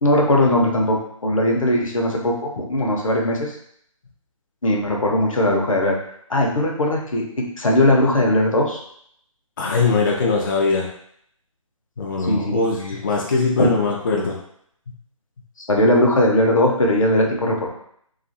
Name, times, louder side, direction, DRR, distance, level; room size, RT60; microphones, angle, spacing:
voice 1, 0.0-3.5 4.6-5.9 6.3-8.8 12.2-12.6 13.6-13.7 15.7-17.7, left 1 dB, 70° left, 0 dB, 0.7 m, -19 dB
voice 2, 9.6-10.9 12.0-14.4, left 4 dB, 35° left, -2 dB, 0.4 m, -21 dB
2.4 x 2.4 x 2.6 m, 0.68 s
figure-of-eight pair, 145°, 18 cm